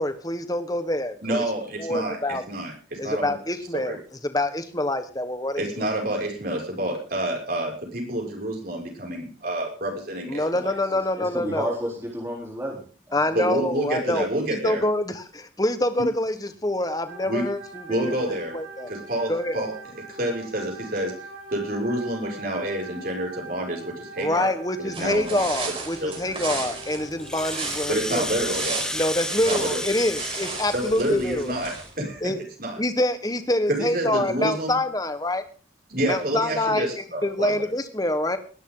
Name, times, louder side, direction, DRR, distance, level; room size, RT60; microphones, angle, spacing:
voice 1, 0.0-1.4 1.8-2.4 3.0-5.8 10.3-11.7 13.1-14.2 14.5-18.9 19.3-19.7 24.2-28.4 28.9-31.5 32.2-32.4 32.8-35.4 36.1-38.4, left 1 dB, 20° left, 10 dB, 1.4 m, -26 dB
voice 2, 1.2-2.2 2.5-3.4 3.7-4.0 5.6-10.7 13.3-14.8 17.2-17.4 17.9-18.5 18.9-19.7 20.2-21.1 21.5-24.5 24.8-25.4 26.0-26.4 27.9-28.8 29.5-29.8 30.7-32.3 32.6-32.8 33.7-34.8 35.9-37.7, right 1 dB, 50° right, 0 dB, 6.4 m, -28 dB
voice 3, 10.9-13.6, equal, 15° right, -3 dB, 3.8 m, -32 dB
sound 1, 17.1-29.2, right 2 dB, 85° right, 6.9 m, -43 dB
sound 2, 24.9-32.1, right 4 dB, 30° right, 5.2 m, -35 dB
Rattle (instrument), 27.1-31.9, left 1 dB, 5° left, 0.9 m, -32 dB
21.0 x 13.0 x 4.0 m, 0.39 s
head